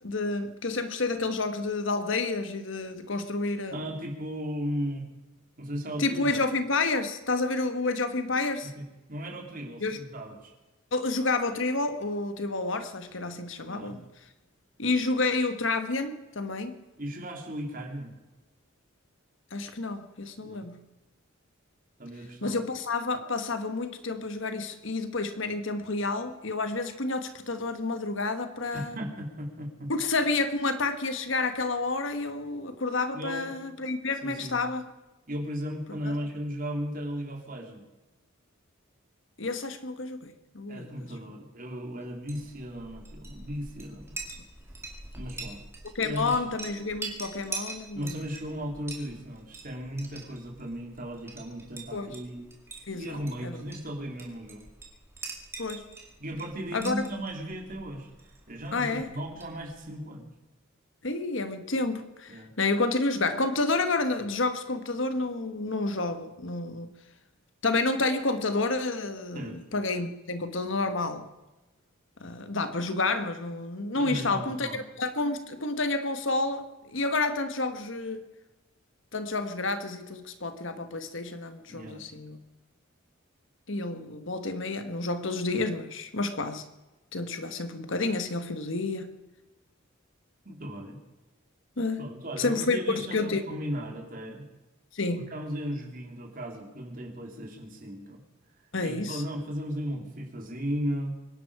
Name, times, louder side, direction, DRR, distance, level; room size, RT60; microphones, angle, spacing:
voice 1, 0.0-3.8 6.0-8.7 9.8-10.0 10.9-14.1 14.8-16.8 19.5-20.9 22.4-29.0 29.9-34.8 36.0-36.1 39.4-41.1 45.9-48.2 51.9-52.2 52.9-53.6 55.6-55.9 56.7-57.1 58.7-59.1 61.0-66.9 67.6-71.3 72.2-78.2 79.1-82.4 83.7-86.6 87.1-89.2 91.8-92.0 92.4-93.4 94.9-95.3 98.7-99.2, left 3 dB, 65° left, 9 dB, 1.4 m, -30 dB
voice 2, 3.7-5.1 5.6-6.4 8.6-10.5 13.6-13.9 17.0-18.1 20.4-20.6 22.0-22.6 28.7-29.9 33.1-33.5 34.2-34.6 35.3-37.8 40.7-44.2 45.1-45.6 45.9-46.3 47.9-52.5 53.0-54.6 56.2-58.1 58.5-60.3 62.3-62.5 69.3-69.6 73.9-74.8 81.7-82.0 90.4-91.0 92.0-94.4 95.1-98.2 98.8-101.1, equal, 40° right, 1 dB, 3.2 m, -36 dB
Chink clink, 42.1-59.9, right 3 dB, 10° right, 2.3 m, -44 dB
25.0 x 11.0 x 4.9 m, 1.1 s
head